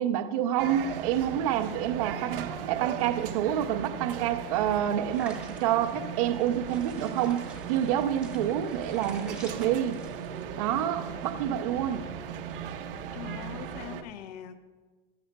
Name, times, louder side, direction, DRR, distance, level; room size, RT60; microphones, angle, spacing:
voice 1, 0.0-10.0 10.6-12.1, right 10 dB, 40° right, 8 dB, 0.5 m, -28 dB
sound 1, 0.6-14.0, right 8 dB, 70° right, 0.8 m, -38 dB
sound 2, 5.1-10.4, right 2 dB, 5° right, 1.0 m, -50 dB
voice 2, 13.1-14.6, left 9 dB, 45° left, 10 dB, 0.7 m, -42 dB
15.0 x 12.0 x 2.2 m, 1.4 s
supercardioid pair, 175°, 29 cm